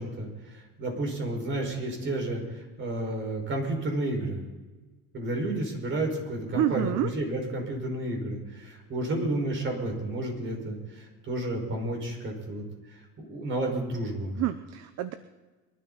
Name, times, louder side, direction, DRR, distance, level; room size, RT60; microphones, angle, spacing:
voice 1, 0.0-4.4 5.1-12.6 12.9-14.3, right 1 dB, 45° right, 2 dB, 5.3 m, -31 dB
voice 2, 6.6-7.1 14.4-15.1, right 12 dB, 60° right, 11 dB, 0.9 m, -28 dB
23.0 x 12.5 x 4.1 m, 1.3 s
cardioid pair, 130°, 29 cm